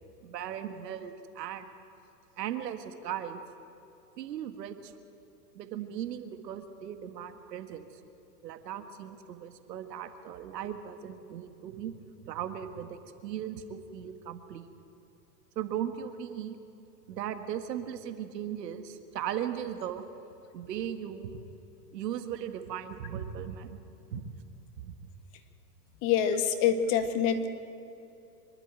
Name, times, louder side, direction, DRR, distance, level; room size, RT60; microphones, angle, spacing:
voice 1, 0.2-1.7 2.4-3.4 4.2-4.9 5.6-7.9 8.4-12.0 12.2-14.7 15.6-16.6 17.1-20.0 20.5-21.3 21.9-23.8 24.1-24.3 24.8-25.1, right 9 dB, 75° right, 8 dB, 1.8 m, -37 dB
voice 2, 26.0-27.5, left 8 dB, 40° left, 8 dB, 1.8 m, -26 dB
25.0 x 11.5 x 9.1 m, 2.7 s
hypercardioid pair, 125°, 50 cm